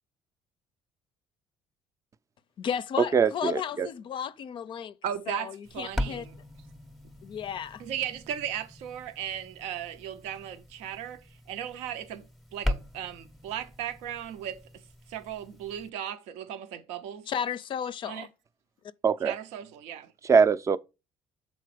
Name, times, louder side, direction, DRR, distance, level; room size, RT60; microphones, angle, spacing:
voice 1, 2.6-4.9 5.3-6.2 7.2-7.8 17.3-18.3, left 8 dB, 50° left, 0.4 m, -34 dB
voice 2, 3.1-3.9 19.0-19.3 20.3-20.8, right 6 dB, 30° right, 0.4 m, -22 dB
voice 3, 5.0-6.4 7.8-14.8 15.1-17.3 18.0-18.3 19.2-20.1, right 10 dB, 90° right, 0.6 m, -37 dB
sound 1, 5.6-15.9, left 1 dB, ahead, 0.7 m, -39 dB
6.7 x 4.1 x 4.8 m
cardioid pair, 105°, 11 cm